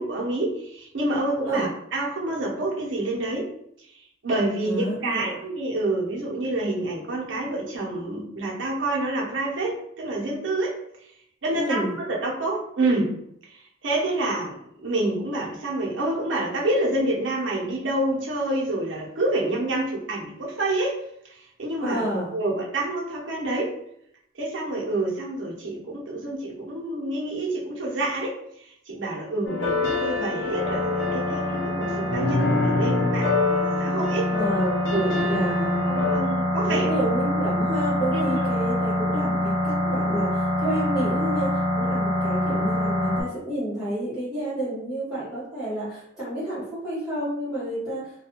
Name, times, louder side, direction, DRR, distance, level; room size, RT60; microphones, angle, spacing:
voice 1, 0.0-3.5 4.2-10.7 11.4-13.1 13.8-14.6 14.8-21.0 21.6-22.0 22.3-23.7 24.4-28.3 28.9-34.3 34.9-35.4 35.9-36.9 38.1-38.5, right 2 dB, 80° right, -2 dB, 0.7 m, -27 dB
voice 2, 4.6-5.4 11.5-11.9 21.8-22.3 34.3-34.9 35.2-35.7 36.7-48.0, right 1 dB, 5° right, -13 dB, 0.9 m, -29 dB
sound 1, 29.5-36.2, left 3 dB, 80° left, 0.6 m, -26 dB
sound 2, 30.5-43.2, left 1 dB, 30° right, 0.6 m, -26 dB
2.4 x 2.3 x 2.9 m, 0.72 s
head